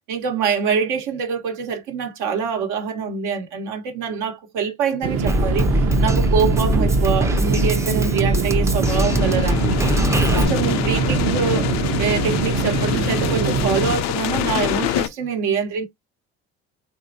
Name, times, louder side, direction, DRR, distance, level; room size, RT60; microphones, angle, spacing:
voice 1, 0.1-9.8 10.3-11.7 12.0-15.9, right 6 dB, 80° right, 1.1 m, -25 dB
sound 1, 5.0-14.0, right 5 dB, 50° right, 0.7 m, -23 dB
Drum kit, 5.3-10.4, equal, 10° right, 0.5 m, -21 dB
sound 2, 8.8-15.1, left 13 dB, 65° left, 0.5 m, -25 dB
3.2 x 2.6 x 2.6 m
supercardioid pair, 85°, 30 cm